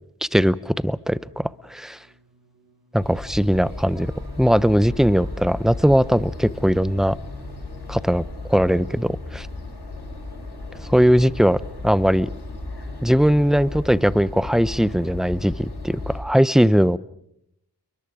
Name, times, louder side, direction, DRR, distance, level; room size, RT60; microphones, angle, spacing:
voice 1, 0.2-2.0 2.9-4.1 4.4-7.2 7.9-9.5 10.9-12.3 13.0-17.0, equal, ahead, 0.8 m, -19 dB
sound 1, 0.9-15.7, right 1 dB, 60° right, 5.9 m, -53 dB
sound 2, 3.0-16.2, left 2 dB, 80° left, 6.6 m, -35 dB
29.0 x 23.0 x 5.0 m
cardioid pair, 45°, 40 cm